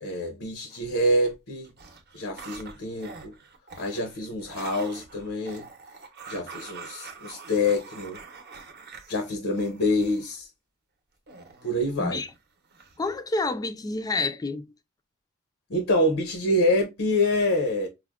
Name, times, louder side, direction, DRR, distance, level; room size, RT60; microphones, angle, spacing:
voice 1, 0.0-1.7 2.1-3.3 3.8-5.6 6.3-8.2 9.1-10.5 11.6-12.2 15.7-17.9, left 1 dB, 85° left, 0.7 m, -26 dB
sound 1, 0.7-1.3 1.6-10.3 11.3-12.4 12.7-13.1, right 4 dB, 50° right, 0.7 m, -45 dB
voice 2, 13.0-14.7, left 3 dB, 15° left, 0.3 m, -28 dB
4.8 x 2.1 x 2.3 m
head